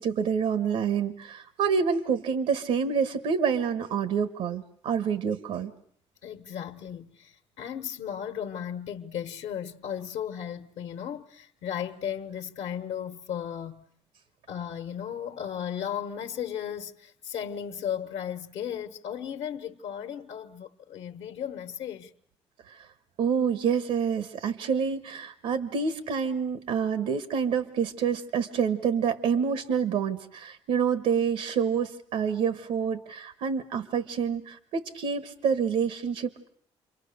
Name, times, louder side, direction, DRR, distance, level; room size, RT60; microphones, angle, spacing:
voice 1, 0.0-5.7 22.7-22.9 23.2-36.5, right 6 dB, 85° right, 1.3 m, -27 dB
voice 2, 6.2-13.9 14.5-22.1, left 9 dB, 80° left, 1.2 m, -35 dB
29.0 x 23.5 x 6.7 m
cardioid pair, 130°, 10 cm